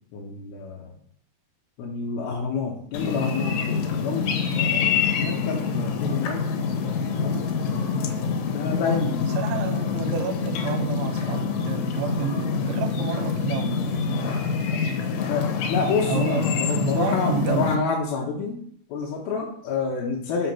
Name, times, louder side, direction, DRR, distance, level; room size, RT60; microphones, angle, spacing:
voice 1, 0.1-0.9 1.8-6.5 6.8-7.7 8.5-9.4 15.3-18.6 18.9-20.5, left 4 dB, 75° left, -3 dB, 2.8 m, -29 dB
sound 1, 2.9-17.8, left 5 dB, 90° left, 3.1 m, -26 dB
voice 2, 9.4-14.3 16.1-16.4 16.7-17.8, right 8 dB, 80° right, 7 dB, 2.7 m, -30 dB
6.3 x 5.8 x 5.8 m, 0.62 s
omnidirectional pair, 4.7 m